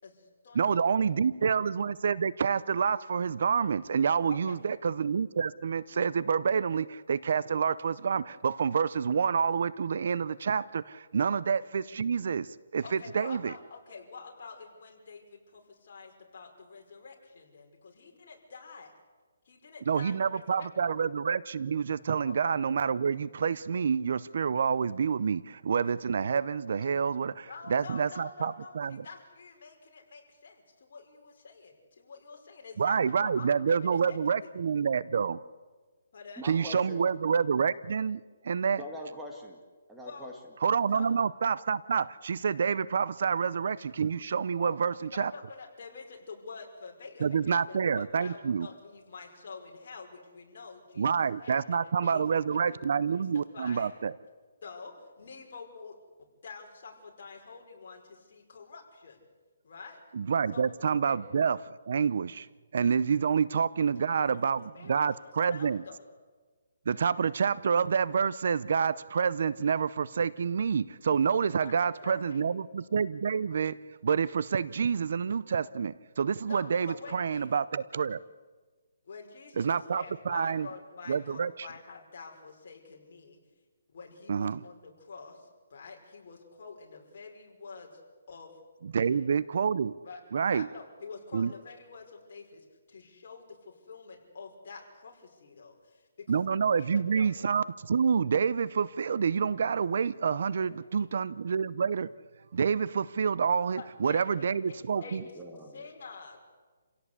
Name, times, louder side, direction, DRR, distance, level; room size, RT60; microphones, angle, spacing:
voice 1, 0.0-1.5 4.3-4.6 11.3-11.4 12.8-18.9 19.5-21.0 22.2-22.4 27.4-34.5 36.1-36.4 40.0-40.3 40.9-41.1 44.6-53.9 54.6-56.0 56.4-59.2 59.6-60.0 60.5-60.7 61.0-61.2 64.1-64.3 64.7-66.1 71.6-72.5 76.5-77.6 79.0-83.4 83.9-88.0 88.3-88.6 88.9-89.1 90.0-90.2 90.5-96.4 96.8-97.3 100.6-101.2 103.7-105.3 105.7-106.4, left 4 dB, 50° left, 0 dB, 5.4 m, -47 dB
voice 2, 0.5-12.5 12.7-13.5 19.9-29.0 32.8-35.4 36.4-38.8 40.6-45.3 47.2-48.7 51.0-54.2 60.1-61.6 61.9-62.5 62.7-65.8 66.9-73.8 74.0-78.2 79.6-80.7 81.1-81.7 84.3-84.6 88.8-89.9 90.3-90.7 91.3-91.5 96.3-102.1 102.5-105.2, right 6 dB, 55° right, 19 dB, 0.6 m, -28 dB
voice 3, 36.4-37.0 38.8-39.6 39.9-40.3 104.9-105.9, equal, 5° right, 0 dB, 2.0 m, -43 dB
28.5 x 16.5 x 8.3 m, 1.4 s
hypercardioid pair, 165°, 0 cm